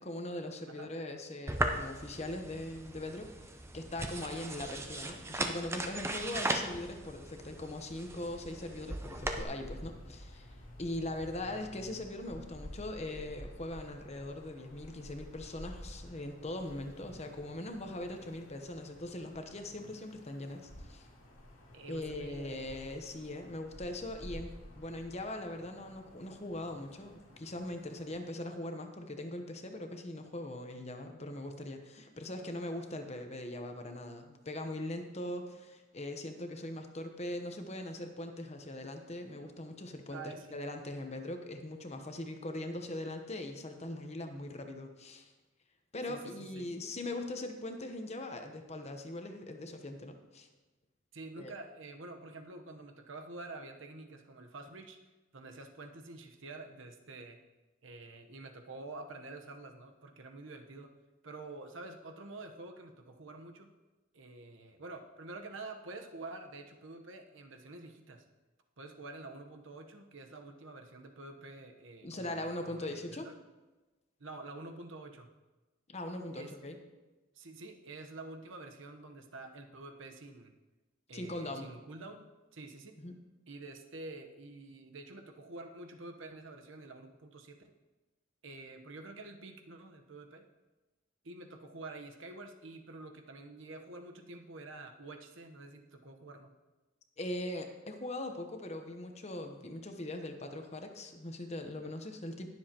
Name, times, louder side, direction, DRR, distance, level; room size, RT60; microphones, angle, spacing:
voice 1, 0.0-21.1 21.9-45.3 45.9-50.5 51.4-51.5 72.0-73.3 75.9-76.8 81.1-81.7 83.0-83.2 97.2-102.5, left 1 dB, 30° left, 5 dB, 0.9 m, -41 dB
sound 1, 1.5-9.4, right 2 dB, 15° right, 0.6 m, -38 dB
sound 2, 9.2-28.2, equal, 75° left, 2.4 m, -51 dB
voice 2, 21.7-22.6 40.1-40.6 46.1-46.7 51.1-55.0 55.3-57.4 57.8-60.9 61.2-63.7 64.1-68.2 68.8-73.3 74.2-75.3 76.3-76.5 77.3-80.5 81.1-82.3 82.5-83.0 83.5-87.7 88.4-90.5 91.2-96.5, right 2 dB, 70° right, 5 dB, 1.0 m, -48 dB
20.0 x 7.2 x 2.9 m, 1.1 s
head